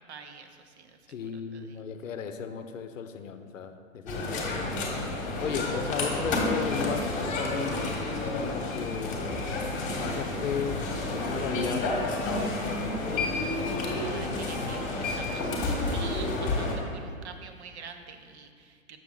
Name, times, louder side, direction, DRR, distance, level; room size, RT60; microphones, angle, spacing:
voice 1, 0.0-1.0 1.5-1.8 14.0-19.0, right 6 dB, 55° right, 7 dB, 0.7 m, -46 dB
voice 2, 1.1-4.8 5.4-7.9 8.4-9.4 10.0-12.0 12.2-13.8, left 6 dB, 70° left, 8 dB, 0.7 m, -36 dB
sound 1, 4.1-16.7, left 2 dB, 20° left, 1.2 m, -30 dB
7.0 x 6.1 x 3.8 m, 2.1 s
hypercardioid pair, 125°, 41 cm